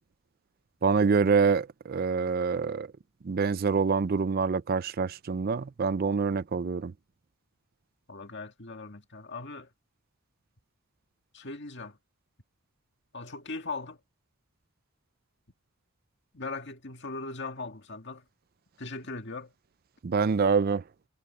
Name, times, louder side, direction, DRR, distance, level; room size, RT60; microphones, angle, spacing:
voice 1, 0.8-2.9 3.2-6.9 20.0-20.8, right 5 dB, 45° right, 0.4 m, -26 dB
voice 2, 8.1-9.7 11.3-12.0 13.1-14.0 16.3-18.2 18.8-19.5, left 3 dB, 50° left, 2.1 m, -39 dB
head